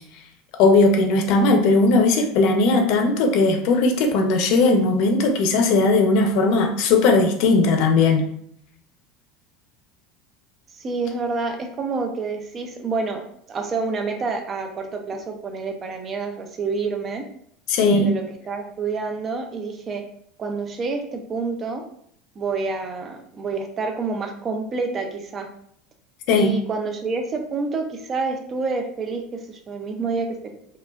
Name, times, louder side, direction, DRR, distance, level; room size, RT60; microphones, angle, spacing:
voice 1, 0.6-8.2 17.7-18.1 26.3-26.5, left 3 dB, 60° left, 4 dB, 0.7 m, -18 dB
voice 2, 10.7-13.2 13.5-17.2 17.8-20.0 20.4-21.8 22.3-25.5 26.4-30.5, right 4 dB, 25° right, 4 dB, 0.5 m, -28 dB
4.7 x 2.4 x 2.4 m, 0.67 s
supercardioid pair, 145°, 0 cm